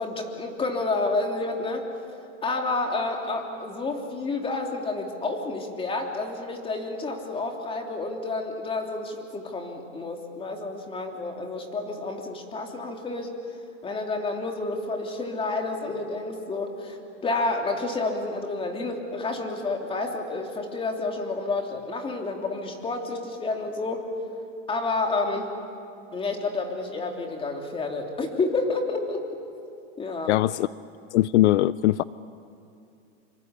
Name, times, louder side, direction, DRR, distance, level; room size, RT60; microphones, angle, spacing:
voice 1, 0.0-1.9 2.4-13.3 13.8-24.1 24.7-25.5 26.1-29.2 30.0-30.4, left 3 dB, 15° left, 2 dB, 3.2 m, -30 dB
voice 2, 30.3-30.7 31.1-32.0, left 15 dB, 70° left, 18 dB, 0.6 m, -21 dB
26.5 x 25.0 x 8.4 m, 2.6 s
supercardioid pair, 140°, 36 cm